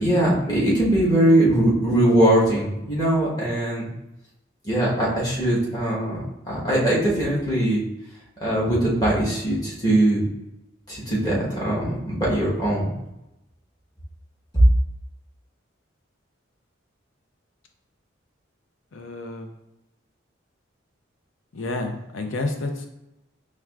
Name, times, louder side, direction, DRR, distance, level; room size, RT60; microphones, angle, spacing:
voice 1, 0.0-3.9 4.6-7.8 8.4-10.2 10.9-12.9 14.5-14.6, right 1 dB, 20° left, -6 dB, 1.1 m, -21 dB
voice 2, 18.9-19.5 21.5-22.9, left 2 dB, 80° left, 4 dB, 0.6 m, -29 dB
4.7 x 3.3 x 2.3 m, 0.90 s
head